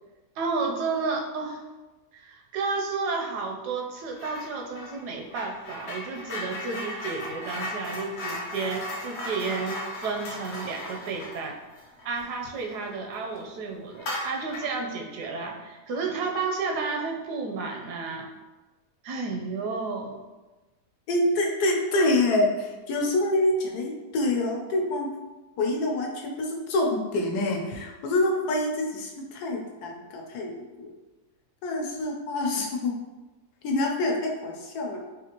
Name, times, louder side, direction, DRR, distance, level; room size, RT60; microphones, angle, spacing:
voice 1, 0.4-1.6 2.1-11.6 12.0-18.3 19.0-20.2, right 4 dB, 85° right, 2 dB, 1.2 m, -32 dB
sound 1, 4.2-4.5 4.7-12.9 13.3-13.4 13.9-14.8, left 1 dB, 55° left, 0.9 m, -36 dB
voice 2, 21.1-25.1 25.6-30.9 31.6-32.9 33.6-35.0, left 2 dB, 80° left, 0 dB, 1.2 m, -26 dB
4.1 x 2.5 x 2.9 m, 1.1 s
omnidirectional pair, 1.7 m